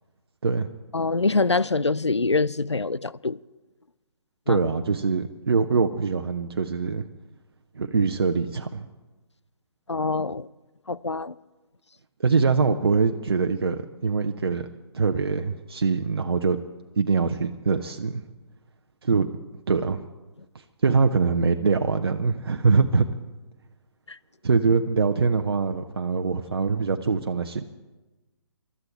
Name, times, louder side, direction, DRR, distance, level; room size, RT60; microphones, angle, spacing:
voice 1, 0.9-3.4 4.5-4.6 9.9-10.5 10.9-11.3 24.1-24.2, left 3 dB, 85° left, 0.5 m, -24 dB
voice 2, 4.5-7.0 7.7-8.9 12.2-14.7 14.9-16.6 17.0-18.2 19.0-19.3 19.7-20.1 20.8-23.0 24.4-27.7, right 4 dB, 60° right, 1.0 m, -23 dB
23.5 x 13.0 x 4.5 m
figure-of-eight pair, 135°, 14 cm